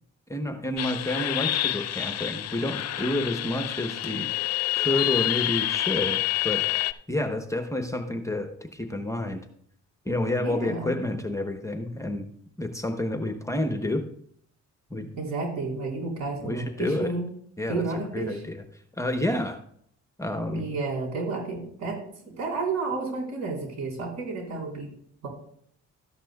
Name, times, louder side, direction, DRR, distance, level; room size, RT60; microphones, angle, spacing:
voice 1, 0.3-4.3 4.7-6.6 7.1-9.4 10.1-12.3 12.6-14.0 14.9-15.1 16.4-17.1 17.6-17.8 18.1-18.6 19.0-19.6 20.2-20.7, left 1 dB, 10° left, 6 dB, 0.9 m, -29 dB
sound 1, 0.8-6.9, left 14 dB, 60° left, 0.5 m, -28 dB
voice 2, 10.4-10.9 15.2-17.3 17.7-18.4 20.5-22.0 22.2-24.9 25.2-25.3, right 3 dB, 65° right, -1 dB, 4.0 m, -31 dB
13.0 x 10.0 x 2.3 m, 0.65 s
cardioid pair, 90°, 30 cm